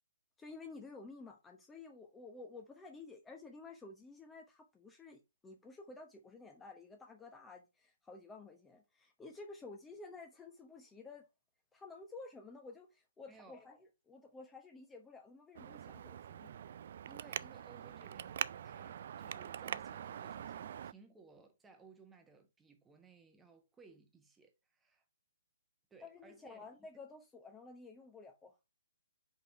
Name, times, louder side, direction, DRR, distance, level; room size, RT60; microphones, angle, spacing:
voice 1, 0.4-11.3 11.7-16.5 26.0-28.6, left 3 dB, 10° left, 1.0 m, -52 dB
voice 2, 13.3-13.6 17.1-25.0 25.9-26.6, right 4 dB, 10° right, 1.2 m, -61 dB
Traffic noise roadway noise, 15.5-20.9, right 9 dB, 50° right, 0.4 m, -43 dB
5.4 x 5.3 x 4.2 m
figure-of-eight pair, 130°, 0 cm